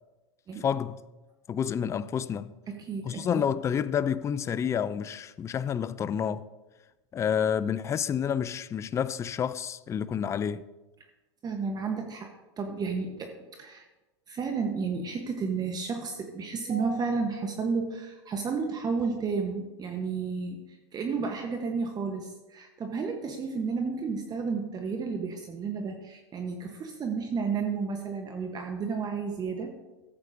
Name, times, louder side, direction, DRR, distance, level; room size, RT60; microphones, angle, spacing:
voice 1, 0.6-1.0 1.5-2.5 3.0-6.4 7.1-10.6, left 8 dB, 20° left, 0.3 m, -29 dB
voice 2, 2.7-3.4 11.4-12.3 12.6-13.8 14.3-20.6 20.9-29.7, right 5 dB, 25° right, 1.0 m, -32 dB
14.5 x 8.0 x 2.6 m
hypercardioid pair, 105°, 15 cm